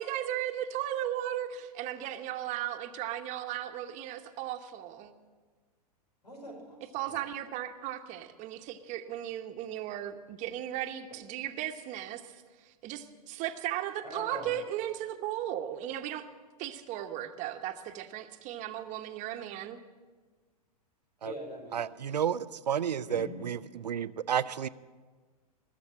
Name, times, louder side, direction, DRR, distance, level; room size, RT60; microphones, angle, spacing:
voice 1, 0.0-5.1 6.9-12.3 12.6-16.2 16.6-19.8, right 12 dB, 35° right, 1.0 m, -36 dB
voice 2, 6.2-7.2 14.0-14.5 21.2-21.8 22.1-22.2 23.1-23.4, left 1 dB, 90° left, 5.3 m, -43 dB
voice 3, 21.7-24.7, right 8 dB, 90° right, 0.5 m, -31 dB
21.0 x 7.2 x 7.5 m
hypercardioid pair, 110°, 20 cm